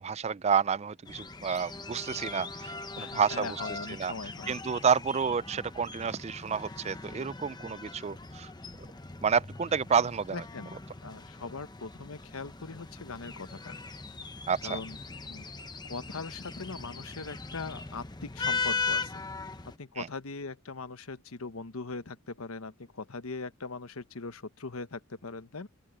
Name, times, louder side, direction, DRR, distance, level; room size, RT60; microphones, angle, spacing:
voice 1, 0.0-3.6 4.0-4.1 4.5-8.5 9.2-10.4 14.5-14.8 20.0-20.1, right 6 dB, 30° right, 0.4 m, -29 dB
sound 1, 1.1-19.8, left 4 dB, 20° left, 0.9 m, -39 dB
voice 2, 3.0-4.5 10.3-13.8 14.6-15.0 15.2-15.5 15.8-19.2 19.8-25.7, left 3 dB, 85° left, 1.1 m, -40 dB
open air
head